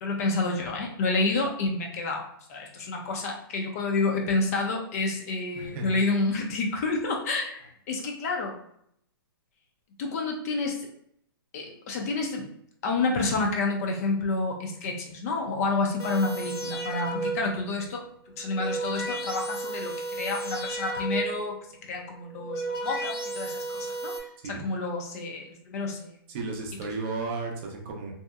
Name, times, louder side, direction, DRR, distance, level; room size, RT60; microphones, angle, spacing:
voice 1, 0.0-7.6 7.9-8.5 10.0-10.9 11.5-12.5 12.8-18.1 18.3-24.1 24.4-26.2, left 3 dB, 40° left, 2 dB, 0.4 m, -29 dB
voice 2, 5.5-6.0 24.4-24.6 26.3-28.1, right 3 dB, 30° right, 0 dB, 0.5 m, -34 dB
sound 1, 16.0-17.6 18.3-21.5 22.2-24.2, right 2 dB, 75° left, 1.0 m, -33 dB
2.7 x 2.1 x 2.3 m, 0.70 s
hypercardioid pair, 150°, 13 cm